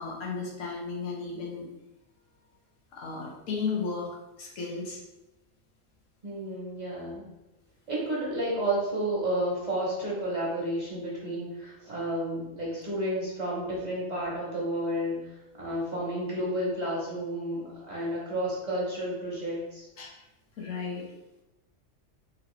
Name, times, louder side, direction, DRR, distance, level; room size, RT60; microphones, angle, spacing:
voice 1, 0.0-1.7 2.9-4.1 4.4-5.0 20.0-20.1 20.6-21.1, left 4 dB, 90° left, -1 dB, 1.2 m, -34 dB
voice 2, 6.2-7.3 7.9-19.9, right 1 dB, 40° right, -5 dB, 0.8 m, -31 dB
3.1 x 2.6 x 3.0 m, 0.99 s
omnidirectional pair, 1.3 m